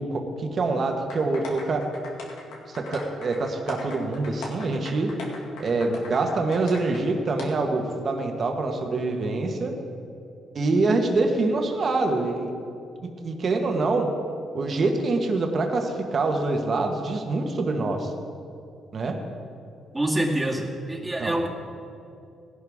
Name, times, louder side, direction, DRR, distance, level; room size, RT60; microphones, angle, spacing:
voice 1, 0.0-1.9 2.7-5.1 5.6-9.7 10.5-12.5 13.2-14.1 14.5-18.1 18.9-19.2 21.2-21.4, right 3 dB, 45° right, 3 dB, 1.4 m, -25 dB
sound 1, 1.1-7.0 7.4-7.5, left 3 dB, 90° left, 2.2 m, -39 dB
voice 2, 19.9-21.5, right 1 dB, 10° right, -1 dB, 2.0 m, -26 dB
17.5 x 11.0 x 3.6 m, 2.6 s
cardioid pair, 90°, 0 cm